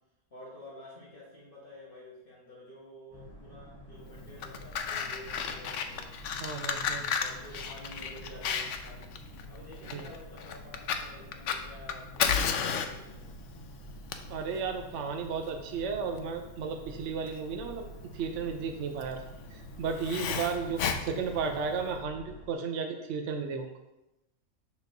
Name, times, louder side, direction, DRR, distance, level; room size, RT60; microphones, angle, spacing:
voice 1, 0.3-6.1 7.2-9.2 9.5-13.3, left 1 dB, 40° left, -5 dB, 1.3 m, -50 dB
Boat Water vehicle, 3.1-22.5, equal, 20° left, 0.8 m, -49 dB
Fire, 4.2-22.0, left 7 dB, 65° left, 0.8 m, -34 dB
voice 2, 6.4-7.1 9.9-10.0 14.3-17.9 18.1-19.2 19.5-23.7, right 5 dB, 65° right, 4 dB, 0.8 m, -34 dB
7.1 x 6.1 x 2.7 m, 0.92 s
omnidirectional pair, 1.5 m